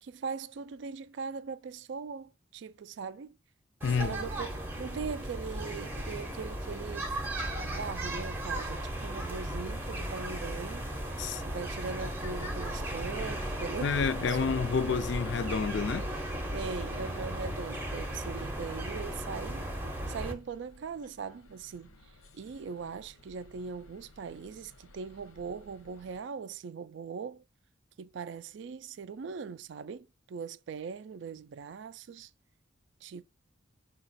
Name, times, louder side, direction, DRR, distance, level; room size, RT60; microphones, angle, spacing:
voice 1, 0.0-3.3 4.0-10.9 11.4-14.0 14.3-14.5 14.8-15.0 16.5-19.7 20.1-22.0 22.3-27.4 28.0-32.3 33.0-33.2, right 5 dB, 60° right, 0.3 m, -40 dB
voice 2, 3.8-4.2 11.2-11.4 13.8-16.1, left 5 dB, 55° left, 0.3 m, -29 dB
sound 1, 3.8-20.3, right 1 dB, 10° right, 0.6 m, -36 dB
sound 2, 9.5-26.2, left 2 dB, 85° left, 0.9 m, -57 dB
5.0 x 2.3 x 4.0 m
head